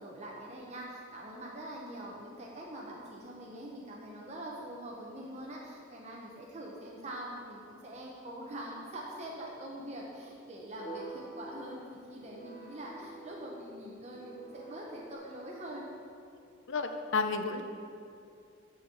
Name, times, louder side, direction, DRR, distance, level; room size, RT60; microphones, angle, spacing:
voice 1, 0.0-15.9, right 1 dB, 35° right, -3 dB, 0.8 m, -44 dB
sound 1, 10.8-15.2, right 2 dB, 35° left, 1.4 m, -47 dB
voice 2, 16.7-17.6, left 4 dB, 60° left, 7 dB, 0.6 m, -31 dB
13.0 x 4.5 x 4.6 m, 2.5 s
head